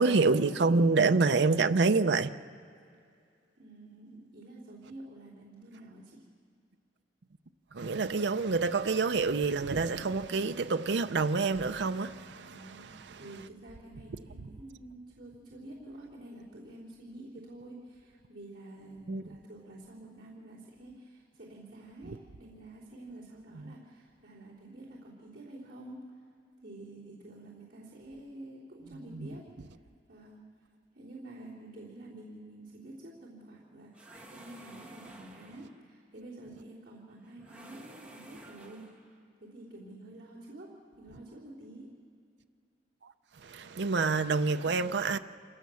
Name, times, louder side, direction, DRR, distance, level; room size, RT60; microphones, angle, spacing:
voice 1, 0.0-2.3 7.7-13.2 19.1-19.2 22.1-22.2 23.7-23.8 29.1-29.3 43.4-45.2, right 4 dB, 70° right, 0.6 m, -27 dB
voice 2, 3.6-6.2 12.4-26.0 26.6-29.5 30.1-30.4 30.9-38.9 39.4-41.9, right 1 dB, 50° right, 3.4 m, -49 dB
sound 1, 33.9-35.8 37.4-39.1, right 1 dB, 5° right, 1.9 m, -52 dB
27.0 x 17.0 x 7.0 m
head